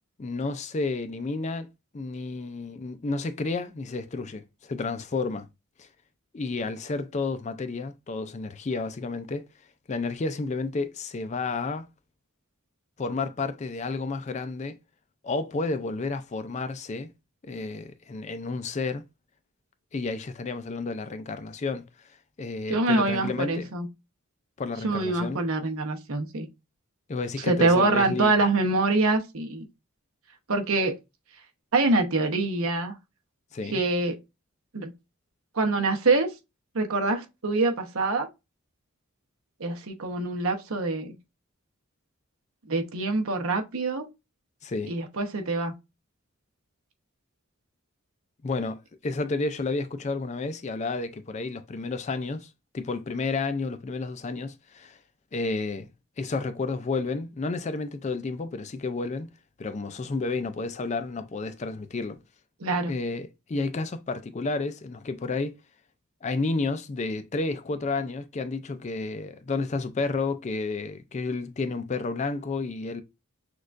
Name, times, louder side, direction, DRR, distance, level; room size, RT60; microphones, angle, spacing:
voice 1, 0.2-1.7 1.9-5.5 5.8-5.9 6.3-9.5 9.9-11.9 13.0-14.8 15.2-17.1 17.4-19.0 19.9-23.7 24.6-25.4 27.1-28.4 33.5-33.8 44.6-44.9 48.4-55.0 55.3-55.9 56.2-59.3 59.6-62.2 62.9-65.6 66.2-73.0, left 3 dB, 35° left, 0.4 m, -31 dB
voice 2, 22.7-23.9 24.8-26.5 27.4-29.7 30.5-30.9 31.7-32.9 33.7-34.1 34.7-34.9 35.5-36.3 36.7-38.3 39.6-41.1 42.7-44.1 44.9-45.7 62.6-62.9, right 3 dB, 80° right, 0.9 m, -25 dB
6.3 x 2.4 x 2.5 m
head